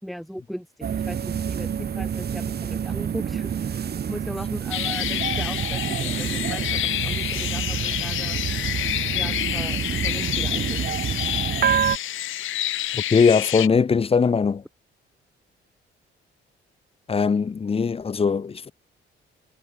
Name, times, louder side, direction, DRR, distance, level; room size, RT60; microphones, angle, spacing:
voice 1, 0.0-8.4 9.1-11.0, equal, ahead, 3.4 m, -38 dB
sound 1, 0.8-12.0, right 8 dB, 55° right, 5.0 m, -28 dB
sound 2, 4.7-13.7, left 13 dB, 80° left, 3.1 m, -28 dB
voice 2, 12.9-14.6 17.1-18.7, left 5 dB, 30° left, 0.9 m, -20 dB
cardioid pair, 90°, 20 cm